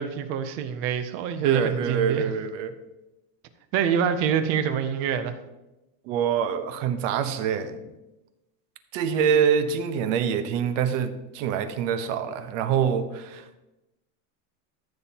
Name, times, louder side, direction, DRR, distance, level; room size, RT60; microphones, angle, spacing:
voice 1, 0.0-2.3 3.7-5.4, right 7 dB, 30° right, 11 dB, 0.4 m, -26 dB
voice 2, 1.4-2.7 6.1-7.9 8.9-13.6, right 7 dB, 55° right, 10 dB, 0.9 m, -25 dB
14.0 x 7.1 x 2.8 m, 1.0 s
supercardioid pair, 170°, 45 cm